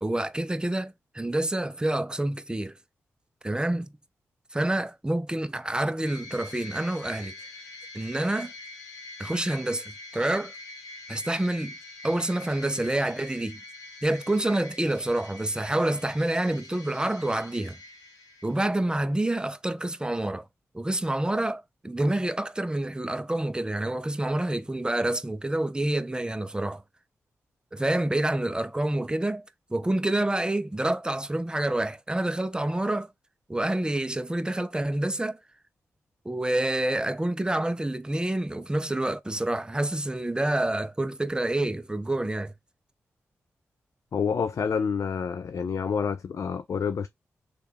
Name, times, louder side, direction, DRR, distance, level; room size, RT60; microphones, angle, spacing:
voice 1, 0.0-2.7 3.4-3.9 4.5-7.3 7.9-8.5 9.2-10.5 11.1-11.7 12.0-13.6 14.0-17.8 18.4-20.5 20.7-26.8 27.7-33.1 33.5-35.4 36.2-42.5, right 1 dB, 15° right, 0.5 m, -28 dB
sound 1, 6.0-18.9, left 2 dB, 80° left, 0.9 m, -45 dB
voice 2, 44.1-47.1, left 6 dB, 60° left, 0.4 m, -28 dB
3.2 x 2.3 x 4.4 m
supercardioid pair, 40°, 6 cm